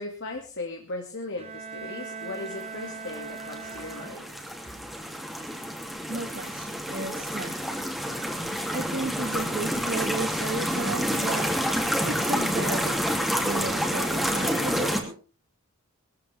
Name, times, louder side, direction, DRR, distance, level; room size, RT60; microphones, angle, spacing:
voice 1, 0.0-4.3, left 2 dB, 60° left, 1 dB, 2.2 m, -37 dB
Bowed string instrument, 1.4-4.6, right 5 dB, 30° right, 2.5 m, -40 dB
sound 1, 2.9-15.0, equal, ahead, 2.8 m, -29 dB
voice 2, 6.1-7.9 8.7-11.5 12.1-13.1 13.4-15.1, right 2 dB, 50° right, 5 dB, 1.7 m, -34 dB
20.5 x 14.5 x 3.5 m, 0.35 s
head